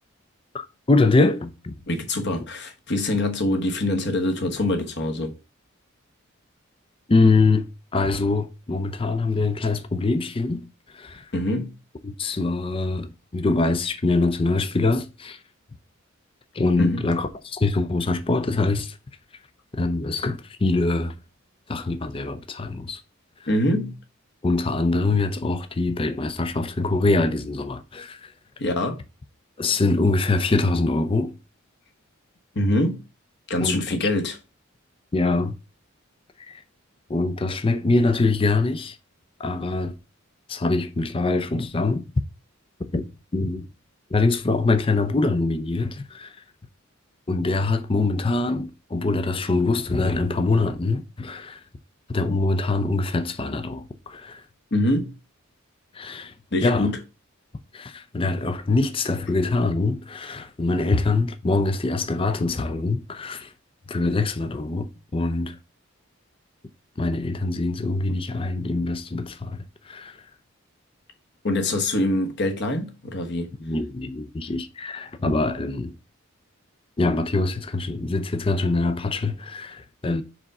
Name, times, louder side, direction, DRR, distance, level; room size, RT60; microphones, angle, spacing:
voice 1, 0.5-1.8 7.1-10.6 10.9-11.3 12.0-15.4 16.5-19.0 19.7-21.2 21.7-23.0 24.4-28.2 29.6-31.4 33.6-33.8 35.1-35.6 36.5-36.6 37.1-39.0 39.4-39.9 40.5-42.1 42.8-43.7 44.1-46.3 47.3-51.6 52.1-54.4 55.9-56.3 56.6-56.9 57.7-63.5 63.9-65.6 67.0-70.2 73.6-75.9 77.0-80.2, left 3 dB, 25° left, 0.5 m, -24 dB
voice 2, 1.9-5.3 11.3-11.7 16.8-17.0 23.5-24.0 28.6-29.0 32.5-33.0 33.5-34.4 54.7-55.2 56.5-56.9 71.4-73.5, left 1 dB, 55° left, 1.2 m, -24 dB
4.9 x 3.7 x 5.3 m
head